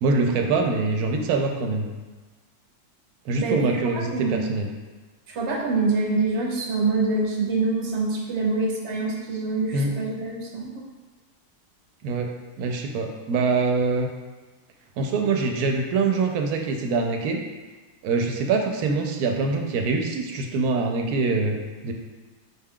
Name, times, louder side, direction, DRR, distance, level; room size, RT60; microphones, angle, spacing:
voice 1, 0.0-1.9 3.3-4.7 9.7-10.0 12.0-12.3 12.6-14.1 15.0-17.4 18.0-21.6 21.8-21.9, right 4 dB, 85° right, 3 dB, 1.1 m, -24 dB
voice 2, 3.4-3.7 4.1-4.4 5.3-10.8, right 3 dB, 55° right, -2 dB, 1.0 m, -25 dB
6.0 x 2.2 x 3.6 m, 1.3 s
omnidirectional pair, 1.6 m